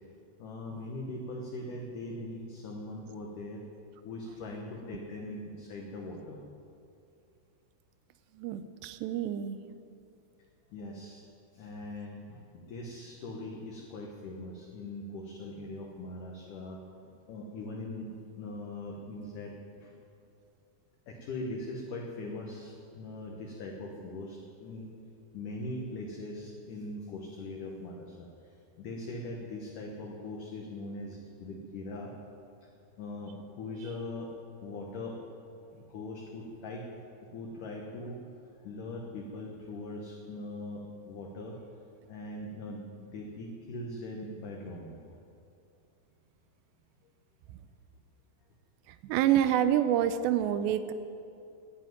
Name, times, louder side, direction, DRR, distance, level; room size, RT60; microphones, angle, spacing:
voice 1, 0.4-3.6 4.0-6.4 10.7-11.2 11.5-16.9 17.3-19.9 21.1-24.9 25.3-32.1 33.0-34.3 34.6-35.2 35.7-36.9 37.2-38.2 38.6-41.6 42.1-45.0, left 2 dB, 65° left, -1 dB, 2.3 m, -41 dB
voice 2, 8.4-9.6 49.0-50.9, right 11 dB, 90° right, 11 dB, 2.9 m, -27 dB
11.5 x 11.0 x 9.3 m, 2.6 s
omnidirectional pair, 4.9 m